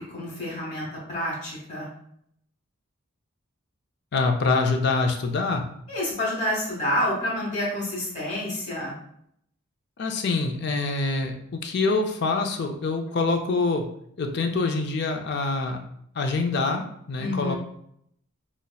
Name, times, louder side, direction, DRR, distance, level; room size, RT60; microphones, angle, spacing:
voice 1, 0.1-1.9 5.9-8.9 17.2-17.6, left 1 dB, 35° left, -4 dB, 1.2 m, -28 dB
voice 2, 4.1-5.6 10.0-13.9 14.2-15.8 16.2-17.6, left 3 dB, 50° left, 4 dB, 0.4 m, -25 dB
5.3 x 2.0 x 2.3 m, 0.70 s
head